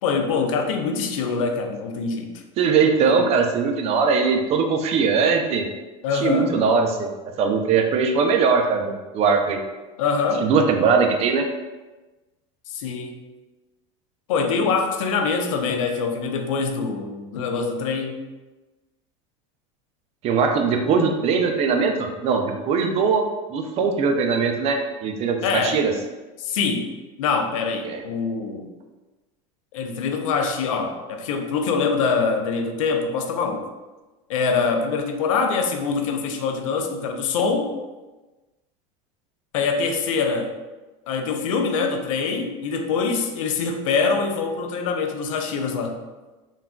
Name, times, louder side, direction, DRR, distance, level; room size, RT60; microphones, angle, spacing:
voice 1, 0.0-2.3 3.1-3.2 6.0-6.5 10.0-10.5 12.7-13.2 14.3-18.2 25.4-25.8 26.4-26.9 27.2-28.7 29.7-33.7 34.3-37.7 39.5-40.5 41.1-46.0, left 5 dB, 85° left, 5 dB, 0.4 m, -24 dB
voice 2, 2.6-5.7 6.1-7.1 7.4-9.6 10.4-11.5 20.2-23.2 23.5-25.9 27.8-28.0, right 5 dB, 40° right, 4 dB, 0.4 m, -20 dB
3.5 x 2.3 x 2.3 m, 1.2 s
supercardioid pair, 115°, 17 cm